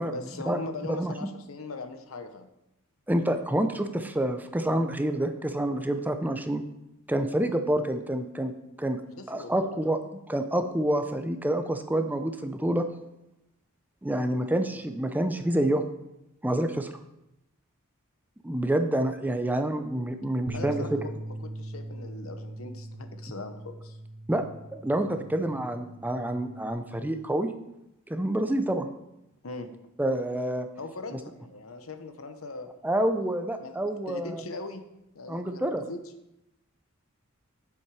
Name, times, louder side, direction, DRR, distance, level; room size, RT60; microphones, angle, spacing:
voice 1, 0.0-2.5 9.2-9.8 20.5-21.1 21.4-24.0 29.4-29.7 30.8-32.7 33.6-33.8 34.1-34.8 35.1-36.0, left 3 dB, 75° left, 8 dB, 0.9 m, -40 dB
voice 2, 3.1-6.6 7.1-8.5 8.8-9.0 9.3-10.0 10.3-12.9 14.0-15.9 16.4-16.9 18.4-21.0 24.3-24.4 24.7-27.5 28.1-28.9 30.0-30.7 32.8-34.4 35.3-35.8, right 1 dB, 10° right, 7 dB, 0.5 m, -27 dB
Bass guitar, 20.5-26.7, right 2 dB, 75° right, 0.7 m, -41 dB
7.6 x 7.2 x 4.8 m, 0.88 s
head